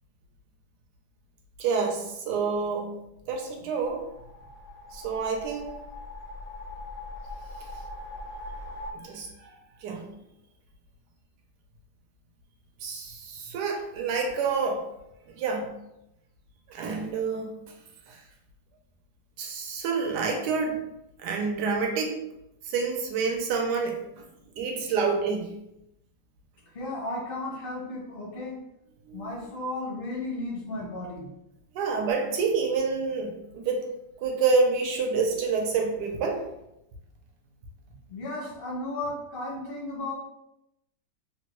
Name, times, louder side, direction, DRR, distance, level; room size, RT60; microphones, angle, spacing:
voice 1, 1.6-3.0 3.3-4.1 4.9-5.7 9.0-9.5 9.8-10.1 12.8-14.9 15.3-15.7 16.7-17.5 18.1-18.2 19.4-20.8 21.2-22.2 22.6-24.2 24.6-25.5 29.1-29.3 31.7-33.9 34.2-36.4, right 4 dB, 80° right, 2 dB, 1.2 m, -28 dB
sound 1, 3.8-8.9, left 2 dB, 75° left, 1.1 m, -41 dB
voice 2, 26.7-28.6 29.1-31.3 38.1-40.1, left 2 dB, 55° left, -2 dB, 0.6 m, -34 dB
3.3 x 2.2 x 2.9 m, 0.85 s
omnidirectional pair, 1.9 m